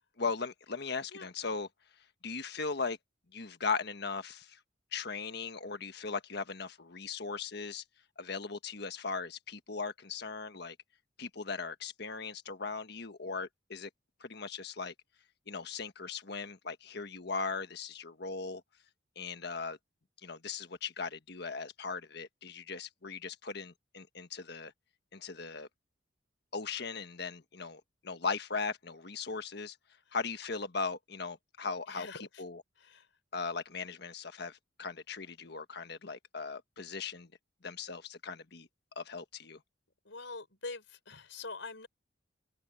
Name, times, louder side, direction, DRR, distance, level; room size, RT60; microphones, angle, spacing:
voice 1, 0.2-1.7 2.2-3.0 3.3-4.6 4.9-7.8 8.2-10.7 11.2-13.9 14.2-14.9 15.5-18.6 19.1-19.8 20.2-24.7 25.1-25.7 26.5-29.8 30.1-32.1 32.4-32.6 33.3-37.3 37.6-38.7 38.9-39.6, left 4 dB, 60° left, 1.4 m, -38 dB
voice 2, 31.9-32.4 32.8-33.1 40.1-41.9, left 3 dB, 80° left, 5.1 m, -44 dB
head